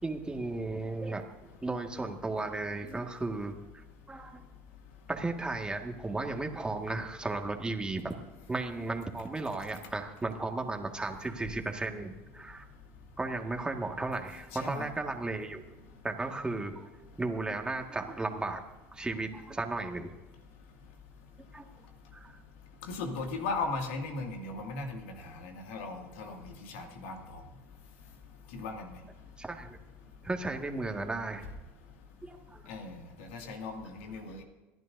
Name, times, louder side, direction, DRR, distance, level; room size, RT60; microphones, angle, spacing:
voice 1, 0.0-1.3 1.6-4.5 5.1-8.1 8.5-12.7 13.2-15.6 16.0-16.9 17.2-18.6 18.9-20.1 21.5-21.6 22.1-22.4 29.4-29.8 30.2-31.5 32.2-32.6 33.5-33.6, right 3 dB, 15° right, 3 dB, 1.8 m, -35 dB
voice 2, 14.5-14.9 22.8-27.4 28.5-29.0 32.7-34.4, left 3 dB, 80° left, 3 dB, 2.3 m, -38 dB
27.5 x 11.0 x 2.7 m, 1.1 s
hypercardioid pair, 85°, 7 cm